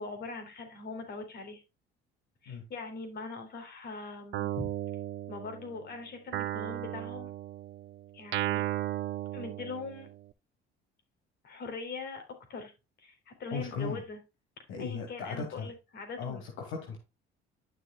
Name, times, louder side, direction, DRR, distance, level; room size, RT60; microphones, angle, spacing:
voice 1, 0.0-1.6 2.4-4.7 5.3-7.3 8.1-8.6 9.3-10.1 11.4-12.2 12.5-12.7 13.0-14.2 14.8-16.4, left 3 dB, 50° left, 6 dB, 3.7 m, -41 dB
Guitar, 4.3-5.8 6.3-10.2, right 14 dB, 60° right, 0.7 m, -35 dB
voice 2, 13.5-14.0 14.7-15.7 16.2-17.0, left 5 dB, 75° left, 2 dB, 2.3 m, -37 dB
11.5 x 6.5 x 2.3 m, 0.26 s
cardioid pair, 105°, 21 cm